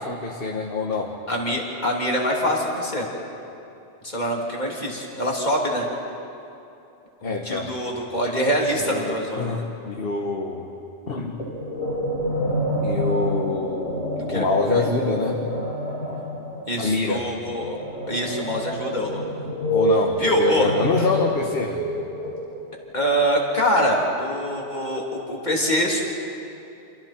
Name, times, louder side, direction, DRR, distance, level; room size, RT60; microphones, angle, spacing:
voice 1, 0.0-1.1 7.2-7.7 8.1-8.2 8.8-10.7 11.1-11.4 12.8-15.4 16.8-17.3 19.7-21.8, left 3 dB, 55° left, 1 dB, 1.6 m, -25 dB
voice 2, 1.3-3.1 4.0-5.9 7.2-9.6 14.2-14.5 16.7-17.8 18.1-19.2 20.2-20.7 22.9-26.0, equal, 40° left, -2 dB, 3.5 m, -24 dB
sound 1, 11.4-22.7, equal, 85° left, 6.5 m, -27 dB
29.5 x 27.5 x 4.4 m, 2.8 s
omnidirectional pair, 1.2 m